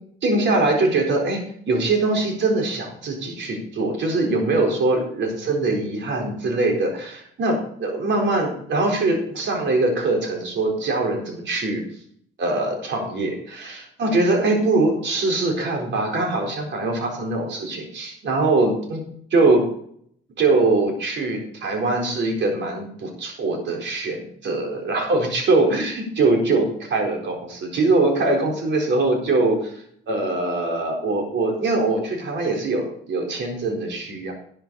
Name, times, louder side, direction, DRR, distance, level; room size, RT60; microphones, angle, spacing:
voice 1, 0.2-11.8 12.4-19.0 19.3-19.6 20.4-34.3, right 2 dB, 65° right, 1 dB, 4.2 m, -22 dB
11.5 x 10.0 x 4.1 m, 0.66 s
cardioid pair, 90°, 20 cm